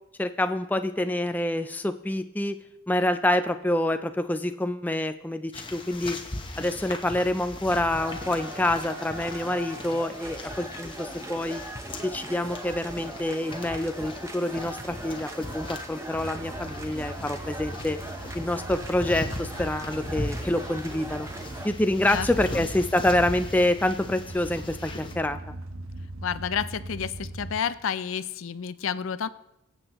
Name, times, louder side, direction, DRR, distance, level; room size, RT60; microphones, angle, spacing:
voice 1, 0.2-2.6 2.9-6.2 6.6-11.6 12.0-18.0 18.3-21.3 21.6-25.4, left 1 dB, 10° left, 8 dB, 0.3 m, -27 dB
sound 1, 5.5-25.1, left 1 dB, 25° left, 0.9 m, -39 dB
sound 2, 7.9-21.7, right 1 dB, 15° right, 0.7 m, -40 dB
sound 3, 16.1-27.6, right 1 dB, 90° right, 1.1 m, -41 dB
voice 2, 22.1-22.7 26.2-29.3, left 7 dB, 75° left, 15 dB, 0.5 m, -30 dB
24.0 x 8.0 x 3.0 m, 0.89 s
head